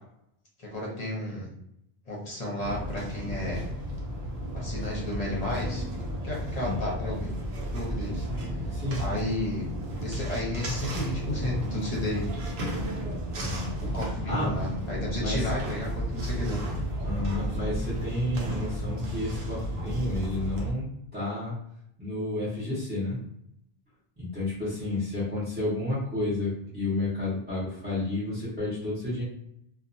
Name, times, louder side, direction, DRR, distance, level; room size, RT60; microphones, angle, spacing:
voice 1, 0.6-1.5 2.1-3.7 4.5-5.8 6.2-7.3 7.7-8.2 9.0-9.7 10.0-12.3 13.9-16.6, left 1 dB, 40° left, -5 dB, 0.9 m, -32 dB
sound 1, 2.6-20.7, equal, 85° right, 0.9 m, -33 dB
voice 2, 8.7-9.2 13.3-13.7 14.3-14.6 15.2-15.5 17.0-21.6 22.0-23.2 24.2-29.2, left 2 dB, 10° right, -11 dB, 0.9 m, -31 dB
2.6 x 2.4 x 2.6 m, 0.74 s
omnidirectional pair, 1.0 m